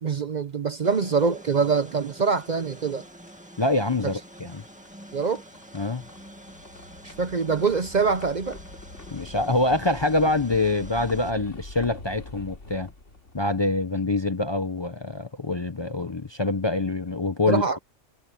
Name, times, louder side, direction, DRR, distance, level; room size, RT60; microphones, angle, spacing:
voice 1, 0.0-3.0 4.0-4.1 5.1-5.4 7.0-8.6 17.5-17.8, right 5 dB, 45° right, 0.7 m, -24 dB
sound 1, 0.8-11.3, equal, 5° right, 2.0 m, -47 dB
sound 2, 2.5-14.4, left 2 dB, 80° left, 3.1 m, -45 dB
voice 2, 3.6-4.6 5.7-6.0 9.1-12.9 13.3-17.6, left 2 dB, 30° left, 0.6 m, -25 dB
omnidirectional pair, 1.2 m